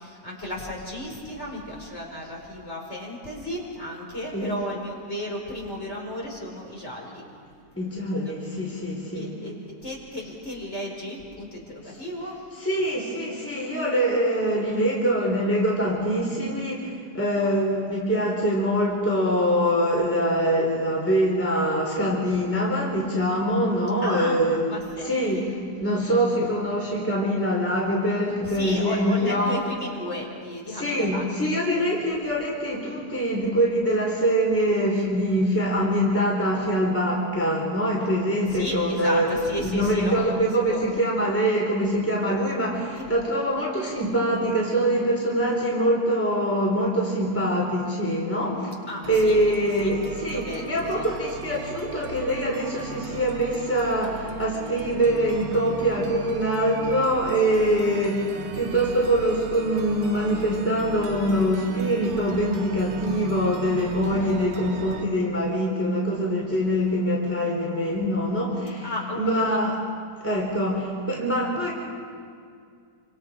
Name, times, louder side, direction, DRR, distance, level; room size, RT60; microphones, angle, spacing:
voice 1, 0.0-7.2 7.7-7.9 8.2-8.3 8.9-9.5 9.8-12.4 24.0-24.4 24.7-25.4 28.4-31.8 38.4-40.8 43.0-43.1 48.9-49.6 50.3-51.1 58.5-58.9 68.8-69.6 70.2-70.5, equal, 40° left, -3 dB, 5.0 m, -34 dB
voice 2, 7.8-9.3 12.6-24.6 25.0-25.5 25.8-29.6 30.7-39.3 39.6-48.7 49.1-69.8 70.2-71.7, equal, 5° left, -3 dB, 3.7 m, -24 dB
sound 1, 49.0-65.0, right 4 dB, 80° right, 1.8 m, -38 dB
28.5 x 26.0 x 5.0 m, 2.2 s
omnidirectional pair, 1.9 m